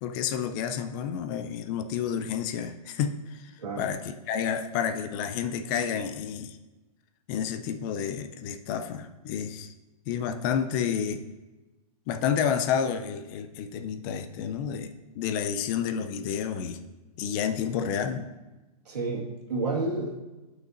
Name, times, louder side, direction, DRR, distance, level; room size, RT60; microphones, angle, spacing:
voice 1, 0.0-3.5 3.8-4.0 4.3-6.6 7.3-9.7 10.1-11.2 12.1-16.8 17.2-18.3, left 8 dB, 30° left, 8 dB, 0.5 m, -30 dB
voice 2, 18.9-20.2, right 3 dB, 85° right, -2 dB, 1.9 m, -30 dB
11.5 x 6.0 x 2.6 m, 1.1 s
hypercardioid pair, 135°, 20 cm